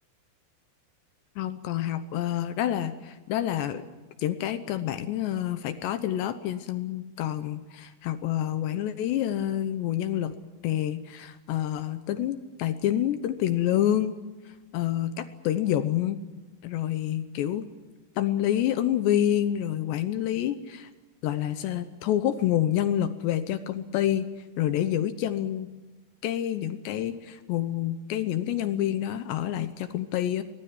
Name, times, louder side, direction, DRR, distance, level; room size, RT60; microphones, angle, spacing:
voice 1, 1.4-3.8 4.2-10.4 10.6-14.1 14.7-16.2 16.6-17.7 18.2-20.9 21.2-24.3 24.6-25.7 26.2-30.4, left 11 dB, 75° left, 10 dB, 2.9 m, -28 dB
24.0 x 19.0 x 9.6 m, 1.2 s
omnidirectional pair, 5.5 m